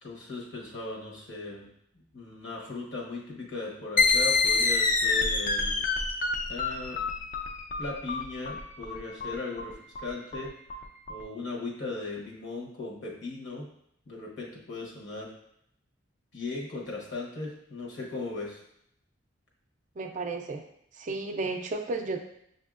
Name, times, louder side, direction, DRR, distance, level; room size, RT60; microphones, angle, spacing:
voice 1, 0.0-1.7 2.1-5.8 6.5-7.0 7.8-10.5 11.1-13.7 14.1-15.3 16.3-18.6, left 3 dB, 70° left, -2 dB, 1.1 m, -37 dB
sound 1, 4.0-11.2, left 4 dB, 40° left, 0.4 m, -27 dB
voice 2, 20.0-20.6 21.0-22.2, right 3 dB, 40° right, 4 dB, 0.4 m, -33 dB
6.6 x 2.7 x 2.4 m, 0.73 s
head